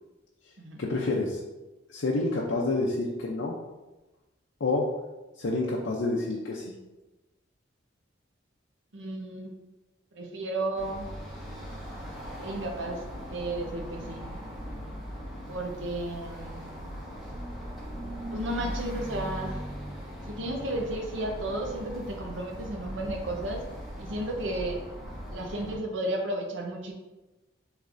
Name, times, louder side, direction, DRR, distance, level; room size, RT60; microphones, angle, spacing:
voice 1, 0.8-1.4 1.9-3.5 4.6-4.9 5.4-6.7, left 2 dB, 80° left, -3 dB, 0.6 m, -28 dB
voice 2, 8.9-9.5 10.1-11.1 12.4-13.0 13.3-14.3 15.5-16.8 18.3-19.6 20.3-23.6 24.0-24.8 25.3-26.9, right 1 dB, 80° right, 2 dB, 0.8 m, -33 dB
sound 1, 10.7-25.8, equal, ahead, 1.3 m, -39 dB
6.3 x 3.2 x 2.6 m, 1.1 s
head